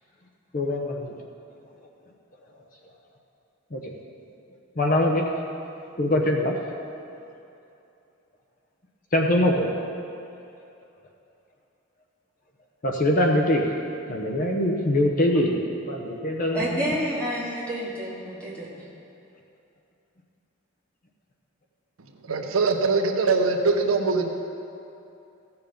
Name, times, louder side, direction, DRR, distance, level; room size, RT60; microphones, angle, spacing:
voice 1, 0.5-1.1 3.7-3.8 4.8-5.2 6.0-6.6 9.1-9.7 12.8-13.7 14.1-16.9, left 1 dB, 40° left, 1 dB, 0.8 m, -23 dB
voice 2, 16.5-18.8, equal, 5° left, -8 dB, 2.5 m, -29 dB
voice 3, 22.3-24.3, right 4 dB, 80° right, 5 dB, 0.8 m, -22 dB
15.0 x 7.1 x 5.2 m, 2.7 s
head